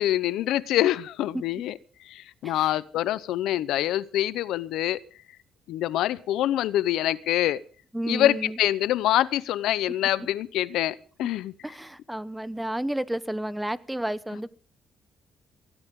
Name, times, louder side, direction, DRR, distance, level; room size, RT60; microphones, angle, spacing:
voice 1, 0.0-1.8 2.1-5.0 5.7-7.6 8.1-11.5, left 13 dB, 85° left, 18 dB, 0.7 m, -25 dB
voice 2, 7.9-8.6 11.6-14.6, right 1 dB, 5° right, 16 dB, 1.0 m, -31 dB
19.0 x 17.5 x 3.7 m, 0.41 s
cardioid pair, 90°, 0 cm